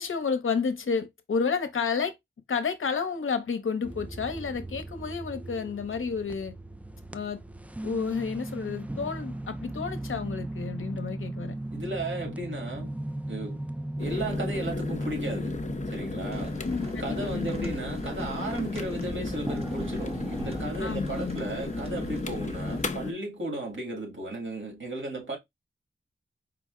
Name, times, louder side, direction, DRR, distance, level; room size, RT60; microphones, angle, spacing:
voice 1, 0.0-2.1 2.5-6.5 7.1-7.4 7.8-11.5 16.6-17.7 20.8-21.5, left 5 dB, 75° left, 0.7 m, -31 dB
sound 1, 3.8-20.6, right 1 dB, 5° right, 0.3 m, -38 dB
voice 2, 11.7-13.0 13.3-13.6 14.0-15.6 15.9-16.6 17.0-25.4, right 1 dB, 65° right, 2.0 m, -35 dB
sound 2, 14.0-23.1, left 3 dB, 35° left, 0.6 m, -34 dB
sound 3, 16.3-23.0, right 1 dB, 30° right, 1.1 m, -43 dB
4.9 x 2.0 x 3.6 m
wide cardioid pair, 70°, 21 cm